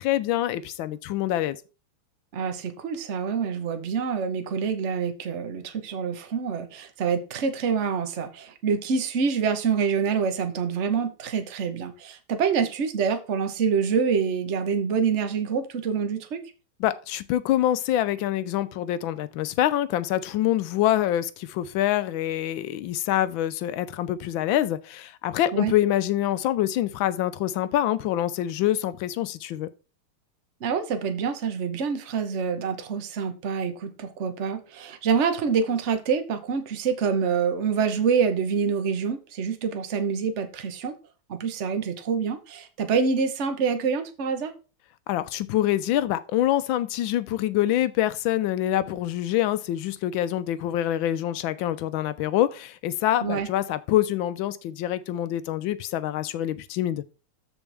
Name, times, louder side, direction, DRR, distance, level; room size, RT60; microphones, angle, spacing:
voice 1, 0.0-1.6 16.8-29.7 45.1-57.0, left 12 dB, 75° left, 1.4 m, -25 dB
voice 2, 2.3-16.4 25.5-25.7 30.6-41.0 41.3-44.5 53.2-53.5, right 6 dB, 45° right, 1.1 m, -26 dB
13.5 x 4.5 x 3.4 m
omnidirectional pair, 2.2 m